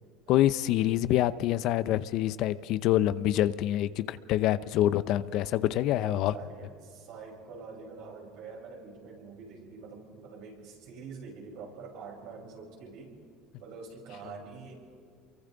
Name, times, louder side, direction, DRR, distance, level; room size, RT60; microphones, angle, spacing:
voice 1, 0.3-6.3, left 13 dB, 65° left, 15 dB, 0.7 m, -26 dB
voice 2, 5.9-13.1 13.6-14.8, right 4 dB, 70° right, -2 dB, 6.9 m, -45 dB
28.5 x 23.5 x 4.0 m, 2.2 s
supercardioid pair, 115°, 0 cm